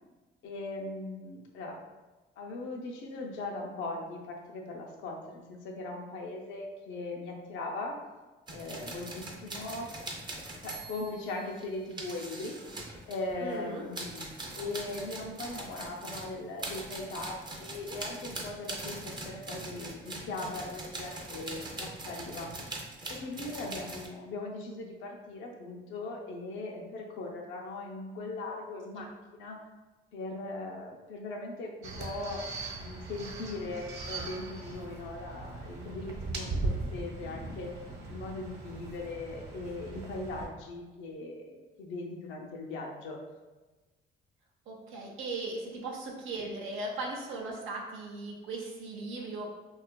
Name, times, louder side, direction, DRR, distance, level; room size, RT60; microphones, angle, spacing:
voice 1, 0.4-1.8 2.4-7.9 8.5-9.9 10.6-12.6 13.1-14.3 14.5-22.5 23.1-29.6 30.1-32.5 32.7-37.7 38.0-43.2, left 2 dB, 80° left, 0 dB, 0.5 m, -39 dB
sound 1, 8.5-13.6 13.9-24.1, right 2 dB, 20° right, 0.5 m, -42 dB
voice 2, 13.4-13.9 28.9-29.1 44.7-49.5, right 2 dB, 85° right, -2 dB, 0.5 m, -38 dB
sound 2, 31.8-40.5, right 3 dB, 55° right, 0.9 m, -39 dB
2.7 x 2.3 x 2.2 m, 1.2 s
cardioid pair, 90°, 20 cm